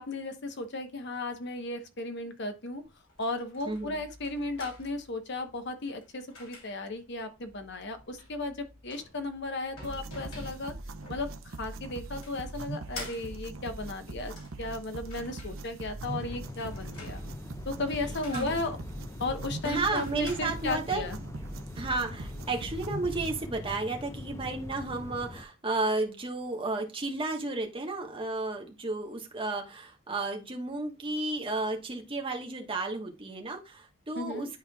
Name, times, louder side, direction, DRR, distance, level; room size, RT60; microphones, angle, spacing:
voice 1, 0.0-2.8 3.2-10.7 11.1-17.2 17.7-18.8 19.2-21.2 34.1-34.5, left 2 dB, 55° left, 7 dB, 0.9 m, -35 dB
sound 1, 2.8-21.4, left 2 dB, 70° left, 3.0 m, -50 dB
voice 2, 3.7-4.0 18.3-18.5 19.6-21.1 21.7-34.6, right 3 dB, 25° right, 2 dB, 1.2 m, -33 dB
sound 2, 9.8-23.5, right 2 dB, 70° right, 0.7 m, -41 dB
sound 3, 16.0-25.4, left 2 dB, 15° left, 0.3 m, -42 dB
10.5 x 4.3 x 2.3 m, 0.27 s
head